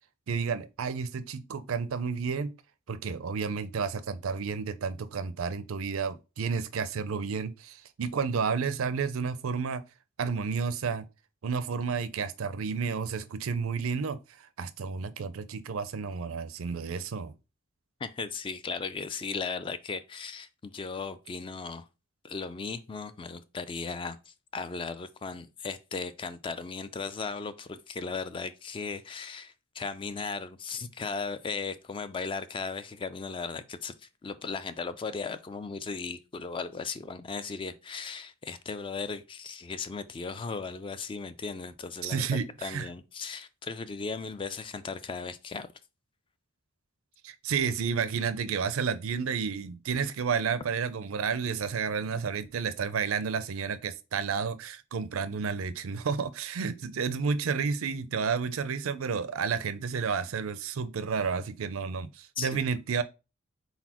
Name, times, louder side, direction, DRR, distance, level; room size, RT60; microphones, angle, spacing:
voice 1, 0.3-2.5 2.9-9.8 10.2-11.0 11.4-14.2 14.6-17.3 42.0-42.9 47.2-63.0, right 5 dB, 80° right, 0.5 m, -31 dB
voice 2, 18.0-21.8 22.2-45.7 62.4-62.6, left 4 dB, 25° left, 0.3 m, -37 dB
4.1 x 4.0 x 2.9 m
head